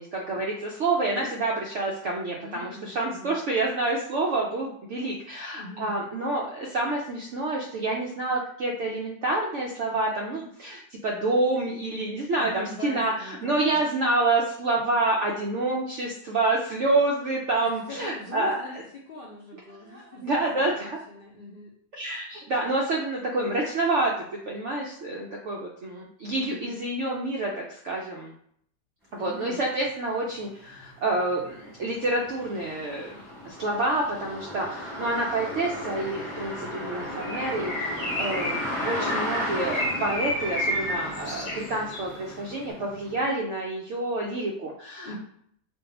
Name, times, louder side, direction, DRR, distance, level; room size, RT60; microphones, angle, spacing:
voice 1, 0.0-18.6 19.5-21.0 21.9-28.3 29.2-45.2, right 2 dB, 85° right, -2 dB, 0.6 m, -28 dB
voice 2, 2.4-3.3 5.5-5.9 12.4-13.9 17.9-18.8 19.1-20.2 20.5-21.7 26.4-26.7 29.2-29.6 45.0-45.2, left 2 dB, 75° left, -4 dB, 0.5 m, -42 dB
sound 1, 29.8-29.9 30.4-43.2, left 1 dB, ahead, 0.9 m, -35 dB
Bird, 37.2-42.1, left 1 dB, 55° left, 1.1 m, -31 dB
2.6 x 2.3 x 3.9 m, 0.65 s
omnidirectional pair, 1.8 m